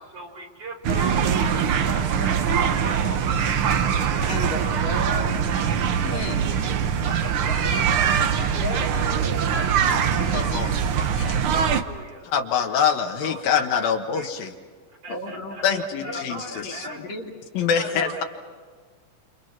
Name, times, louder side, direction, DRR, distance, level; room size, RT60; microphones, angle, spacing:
voice 1, 0.1-4.8 5.2-6.4 7.1-9.0 9.3-10.6 11.5-12.3 13.2-13.9 14.1-14.5 15.0-17.0 17.7-18.2, right 2 dB, 45° right, 1 dB, 4.7 m, -38 dB
sound 1, 0.8-11.8, right 7 dB, 85° right, 1.2 m, -23 dB
voice 2, 4.3-5.3 6.0-6.4 8.6-10.6 15.1-17.4 17.9-18.2, left 3 dB, 55° left, 1 dB, 2.8 m, -35 dB
voice 3, 10.3-10.7 11.1-11.4 12.3-14.5 15.6-16.9 17.5-18.2, left 7 dB, 85° left, 4 dB, 3.3 m, -25 dB
29.5 x 27.5 x 6.0 m, 1.5 s
omnidirectional pair, 4.0 m